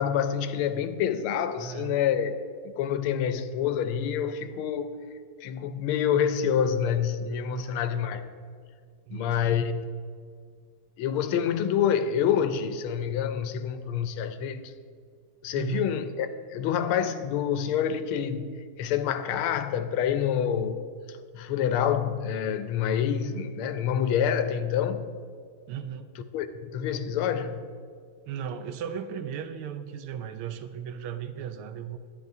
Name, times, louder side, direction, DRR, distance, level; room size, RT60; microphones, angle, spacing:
voice 1, 0.0-2.3 2.8-4.9 5.4-8.2 9.1-9.7 11.0-14.6 15.4-18.5 18.8-20.8 21.3-25.1 26.3-27.6, left 8 dB, 90° left, 1.5 m, -27 dB
voice 2, 1.6-2.0 7.5-7.8 9.1-9.5 15.5-15.9 25.7-26.1 28.3-32.0, right 8 dB, 85° right, 1.5 m, -36 dB
12.0 x 10.0 x 2.7 m
omnidirectional pair, 2.3 m